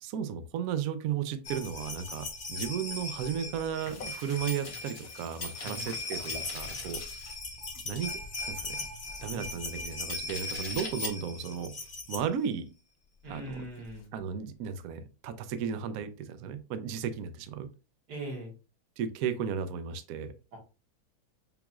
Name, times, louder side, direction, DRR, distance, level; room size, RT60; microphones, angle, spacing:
voice 1, 0.0-7.0 7.8-8.1 8.5-8.8 9.2-12.7 13.3-13.6 14.1-17.7 19.0-20.3, right 8 dB, 90° right, 10 dB, 0.7 m, -34 dB
sound 1, 1.4-12.2 13.3-13.4 13.6-13.7, left 3 dB, 35° left, 0.9 m, -38 dB
sound 2, 3.8-7.5 13.5-14.1, left 5 dB, 85° left, 2.0 m, -47 dB
voice 2, 13.2-14.1 18.1-18.5 20.5-20.6, right 1 dB, 55° right, -1 dB, 2.1 m, -40 dB
7.0 x 3.0 x 2.4 m, 0.31 s
omnidirectional pair, 2.2 m